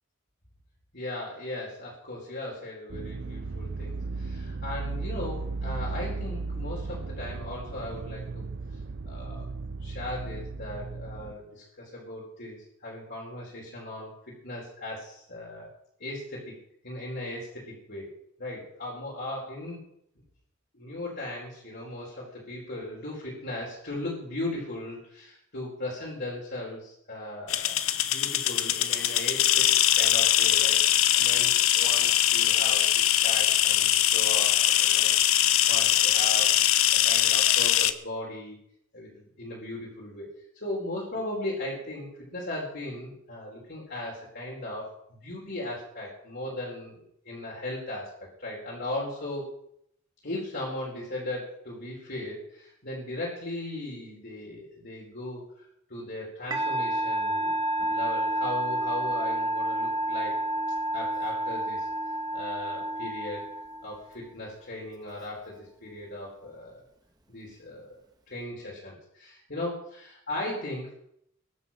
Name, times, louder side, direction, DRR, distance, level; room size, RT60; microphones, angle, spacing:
voice 1, 0.9-8.4 9.0-9.5 9.8-14.1 14.4-15.7 16.0-16.5 16.8-18.1 18.4-19.8 20.8-27.8 28.1-29.6 30.0-30.8 31.1-32.9 33.2-38.6 38.9-40.3 40.5-47.0 47.2-48.1 48.4-49.5 50.2-57.5 57.9-60.4 60.9-61.9 62.3-63.5 63.8-66.8 67.3-68.0 68.3-70.9, left 1 dB, 55° left, -4 dB, 4.6 m, -37 dB
sound 1, 2.9-11.3, right 3 dB, 55° right, 0.5 m, -35 dB
sound 2, 27.5-37.9, left 12 dB, 85° left, 0.9 m, -22 dB
Musical instrument, 56.5-64.1, right 1 dB, 20° right, 1.7 m, -29 dB
22.5 x 7.8 x 5.9 m, 0.73 s
head